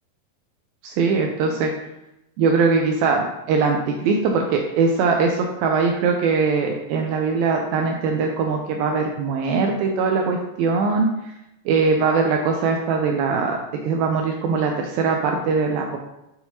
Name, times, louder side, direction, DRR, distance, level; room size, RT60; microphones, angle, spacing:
voice 1, 0.8-1.7 2.4-11.1 11.7-13.6 13.8-16.0, right 4 dB, 80° right, 2 dB, 2.2 m, -21 dB
8.0 x 5.6 x 2.8 m, 0.88 s
omnidirectional pair, 4.5 m